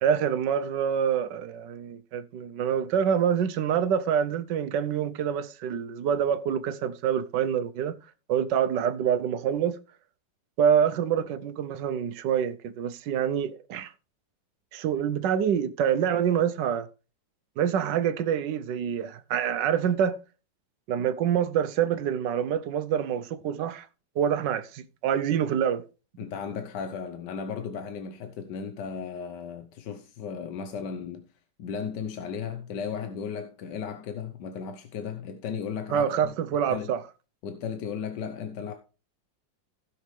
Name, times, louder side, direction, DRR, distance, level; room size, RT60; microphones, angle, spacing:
voice 1, 0.0-8.0 8.3-9.8 10.6-13.9 14.7-16.9 17.6-20.2 20.9-23.9 24.2-25.8 26.2-26.3 35.9-37.0, right 8 dB, 70° right, 1.3 m, -26 dB
voice 2, 26.2-31.3 31.6-37.0 37.4-38.7, left 6 dB, 70° left, 1.4 m, -35 dB
16.5 x 6.4 x 3.2 m
omnidirectional pair, 2.1 m